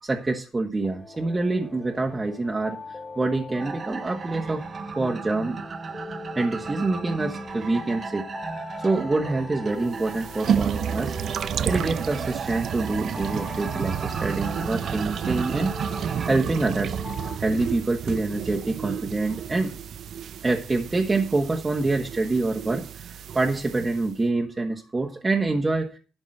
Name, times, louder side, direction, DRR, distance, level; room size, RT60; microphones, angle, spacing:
voice 1, 0.0-2.8 3.2-4.6 5.0-5.6 6.3-8.3 8.8-11.2 11.6-15.7 16.3-17.0 17.4-19.7 20.4-26.0, right 3 dB, 20° right, 2 dB, 1.5 m, -26 dB
sound 1, 0.8-17.4, left 4 dB, 25° left, 3.0 m, -42 dB
sound 2, 3.6-16.3, right 4 dB, 40° right, 1.0 m, -36 dB
sound 3, 9.8-24.1, right 8 dB, 65° right, 0.6 m, -31 dB
12.0 x 5.3 x 7.8 m, 0.36 s
cardioid pair, 90°, 0 cm